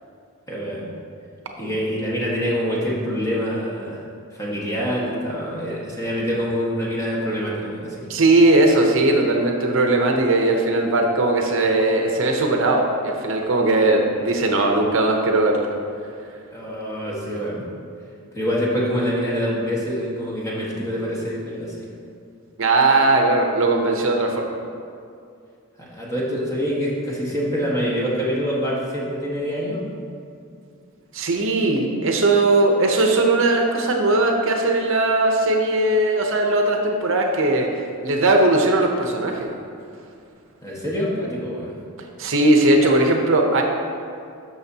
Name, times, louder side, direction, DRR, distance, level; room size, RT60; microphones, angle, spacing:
voice 1, 0.5-0.9 1.6-4.0 4.3-8.1 16.5-17.6 18.3-21.9 25.8-29.8 40.6-41.7, equal, 15° left, -5 dB, 1.4 m, -25 dB
voice 2, 8.1-15.7 22.6-24.6 31.1-37.7 38.0-39.5 42.2-43.6, right 2 dB, 60° right, 2 dB, 0.8 m, -19 dB
13.0 x 6.1 x 2.8 m, 2.5 s
head